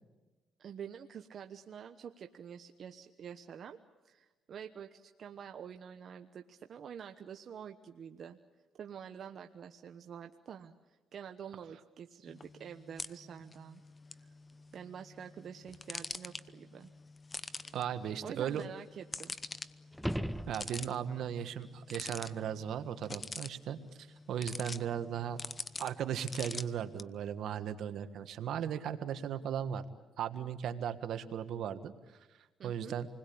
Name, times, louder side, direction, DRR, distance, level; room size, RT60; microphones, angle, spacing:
voice 1, 0.6-3.8 4.0-8.4 8.8-13.8 14.7-16.9 18.2-19.4 32.6-33.0, right 8 dB, 60° right, 6 dB, 1.0 m, -47 dB
sound 1, 12.3-27.0, left 3 dB, 30° left, 0.9 m, -46 dB
voice 2, 17.7-18.6 20.5-23.8 24.3-25.4 25.8-29.8 30.2-31.9 32.6-33.1, right 9 dB, 75° right, 10 dB, 1.5 m, -36 dB
sound 2, 19.9-21.2 26.0-26.1, equal, ahead, 0.9 m, -37 dB
28.0 x 21.0 x 8.7 m, 1.2 s
cardioid pair, 90°, 0 cm